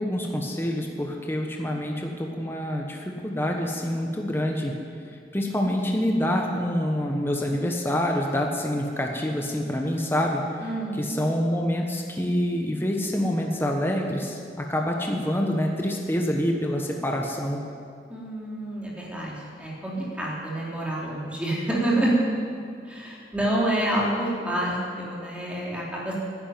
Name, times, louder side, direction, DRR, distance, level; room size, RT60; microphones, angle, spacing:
voice 1, 0.0-4.8 5.1-10.7 10.9-17.6, equal, 15° left, 1 dB, 1.2 m, -26 dB
voice 2, 10.6-11.0 18.1-22.1 22.8-26.2, right 1 dB, 5° right, -5 dB, 3.2 m, -28 dB
11.0 x 11.0 x 9.3 m, 2.3 s
head